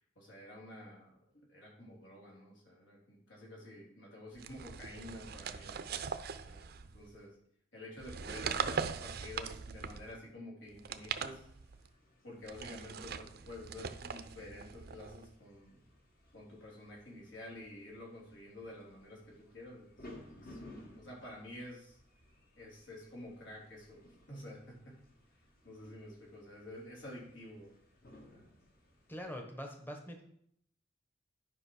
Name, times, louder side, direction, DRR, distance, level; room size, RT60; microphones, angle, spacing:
voice 1, 0.2-1.1 1.5-6.2 6.5-7.3 7.7-11.5 12.2-15.8 16.3-22.0 22.6-24.9 25.6-27.7 28.3-28.5, left 1 dB, 75° left, -3 dB, 3.7 m, -50 dB
sound 1, 4.4-7.1 8.0-10.2 10.7-11.9 12.4-15.3, right 6 dB, 55° right, 0.5 m, -41 dB
sound 2, 10.8-29.3, left 1 dB, 50° left, 1.5 m, -59 dB
voice 2, 29.1-30.2, equal, 10° left, 3 dB, 1.0 m, -43 dB
11.0 x 5.3 x 4.9 m, 0.70 s
head